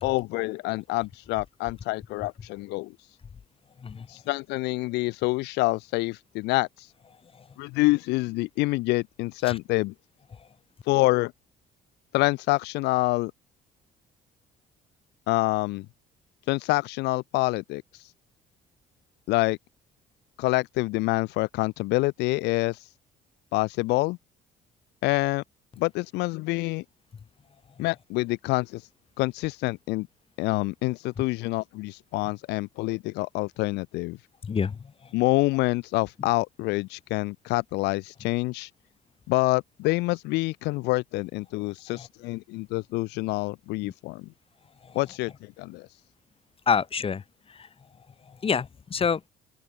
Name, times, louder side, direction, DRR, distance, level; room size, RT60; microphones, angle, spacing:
voice 1, 0.0-2.9 4.1-6.9 7.6-9.9 10.9-11.3 12.1-13.3 15.3-15.9 16.5-18.1 19.3-19.6 20.4-22.9 23.5-24.2 25.0-25.4 25.8-26.8 27.8-28.9 29.2-30.1 30.4-34.2 35.1-38.7 39.3-44.3 44.9-45.9, left 22 dB, 90° left, 0.6 m, -27 dB
voice 2, 34.4-34.8 42.0-42.1 43.8-43.9 44.9-45.0 46.7-47.2 47.5-47.7 48.4-49.2, left 6 dB, 35° left, 2.5 m, -27 dB
open air
cardioid pair, 110°, 17 cm